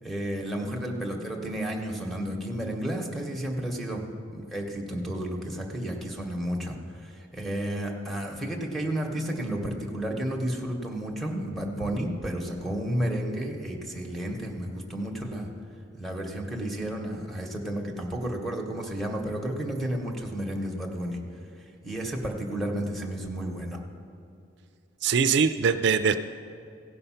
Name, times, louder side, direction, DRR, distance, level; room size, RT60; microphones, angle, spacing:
voice 1, 0.0-15.5 16.0-21.2 21.8-23.8, right 1 dB, ahead, -2 dB, 1.0 m, -32 dB
voice 2, 25.0-26.2, right 6 dB, 65° right, 9 dB, 0.4 m, -22 dB
16.0 x 5.4 x 5.7 m, 2.6 s
head